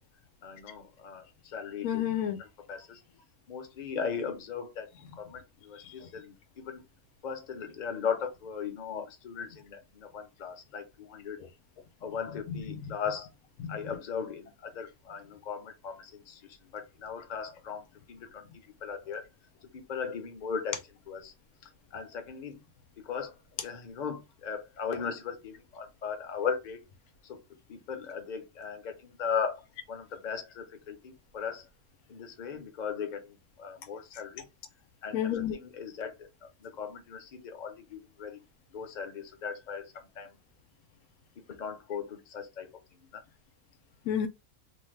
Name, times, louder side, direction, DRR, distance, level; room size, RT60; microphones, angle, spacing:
voice 1, 0.4-2.0 2.4-3.0 3.5-4.9 5.2-6.8 7.2-11.4 12.0-13.3 13.7-16.4 16.7-18.5 18.8-19.3 19.7-20.8 21.1-21.3 21.9-22.6 23.0-23.3 23.6-26.8 27.3-27.4 27.7-31.7 32.1-34.4 35.0-36.1 36.6-38.4 38.7-40.3 41.4-42.7 43.1-43.2, left 6 dB, 40° left, 0.7 m, -37 dB
voice 2, 1.8-2.4 5.9-6.0 12.5-12.7 13.6-13.8 35.1-35.6 44.1-44.3, left 9 dB, 85° left, 1.1 m, -30 dB
2.8 x 2.2 x 3.1 m
omnidirectional pair, 1.5 m